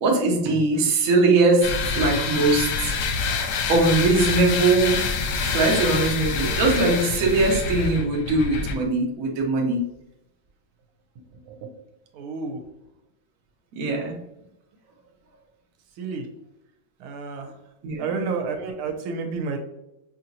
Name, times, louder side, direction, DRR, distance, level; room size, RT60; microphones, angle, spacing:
voice 1, 0.0-3.3 3.7-5.0 5.4-9.8 13.7-14.2 17.8-18.3, right 3 dB, 55° right, 0 dB, 1.1 m, -21 dB
sound 1, 1.6-8.8, left 5 dB, 80° left, 1.5 m, -26 dB
voice 2, 11.2-11.8 12.1-12.6 16.0-16.3 17.0-17.5 18.0-19.6, right 4 dB, 90° right, 4 dB, 1.6 m, -31 dB
5.9 x 2.8 x 2.6 m, 0.88 s
omnidirectional pair, 2.3 m